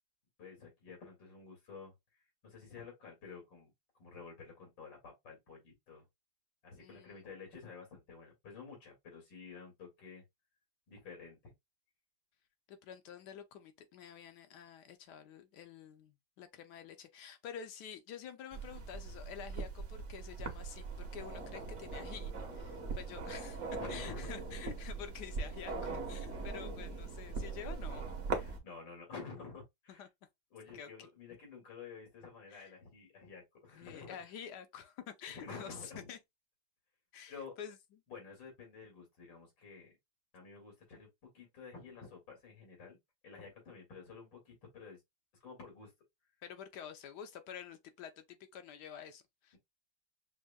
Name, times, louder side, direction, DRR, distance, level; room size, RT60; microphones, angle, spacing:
voice 1, 0.4-1.9 2.4-3.7 4.0-6.0 6.6-10.2 10.9-11.5 23.7-24.3 26.3-26.7 28.3-30.1 30.5-34.3 35.3-36.1 37.3-37.6 38.1-39.9 40.3-41.1 41.3-43.0 43.2-45.0 45.4-45.9, left 5 dB, 90° left, 2.6 m, -50 dB
voice 2, 6.8-7.3 12.7-23.6 23.9-28.1 30.0-30.1 30.7-31.1 32.5-32.7 33.7-36.2 37.1-37.8 46.4-49.6, left 8 dB, 75° left, 1.1 m, -49 dB
sound 1, 18.5-28.6, right 4 dB, 50° right, 1.0 m, -41 dB
6.2 x 2.1 x 2.2 m
omnidirectional pair, 2.0 m